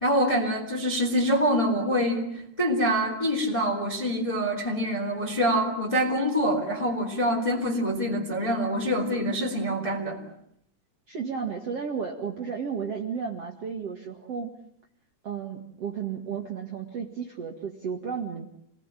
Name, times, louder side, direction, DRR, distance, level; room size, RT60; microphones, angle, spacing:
voice 1, 0.0-2.3 2.6-10.2, equal, 10° left, 0 dB, 3.6 m, -25 dB
voice 2, 11.1-14.5 15.2-18.5, right 6 dB, 45° right, 2 dB, 2.4 m, -33 dB
29.0 x 19.5 x 9.1 m, 0.76 s
omnidirectional pair, 4.8 m